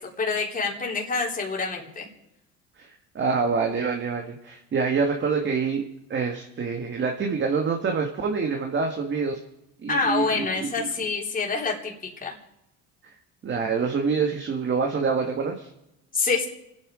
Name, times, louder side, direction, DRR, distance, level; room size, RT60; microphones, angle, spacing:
voice 1, 0.0-2.1 9.9-11.9 12.2-12.3 16.1-16.5, left 4 dB, 25° left, -1 dB, 3.6 m, -26 dB
voice 2, 3.2-5.8 6.1-9.4 9.8-10.9 13.4-15.7, right 5 dB, 35° right, 3 dB, 1.8 m, -26 dB
27.5 x 9.3 x 5.0 m, 0.87 s
supercardioid pair, 95°, 32 cm